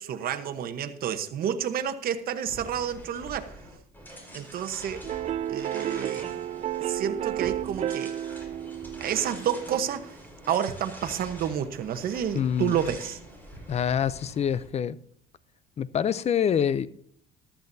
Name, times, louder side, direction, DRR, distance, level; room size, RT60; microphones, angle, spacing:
voice 1, 0.0-3.6 4.3-5.0 5.5-6.3 6.8-8.2 9.0-10.2 10.5-13.2, right 9 dB, 60° right, 1.1 m, -30 dB
sound 1, 2.4-14.7, equal, 10° left, 4.8 m, -45 dB
sound 2, 5.0-10.1, right 12 dB, 45° right, 0.4 m, -32 dB
voice 2, 12.3-12.8 13.7-15.0 15.8-16.9, left 8 dB, 40° left, 0.6 m, -26 dB
14.5 x 12.5 x 2.7 m
cardioid pair, 110°, 17 cm